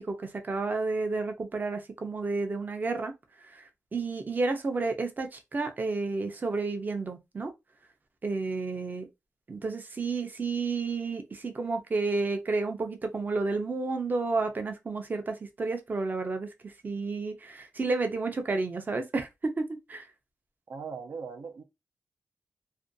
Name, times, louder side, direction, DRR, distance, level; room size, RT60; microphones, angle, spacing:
voice 1, 0.0-3.1 3.5-7.5 8.2-9.1 9.5-19.3 19.6-20.1, right 3 dB, 30° right, 0.4 m, -31 dB
voice 2, 20.7-21.6, right 5 dB, 85° right, 0.5 m, -39 dB
2.5 x 2.2 x 2.5 m
wide cardioid pair, 135°, 6 cm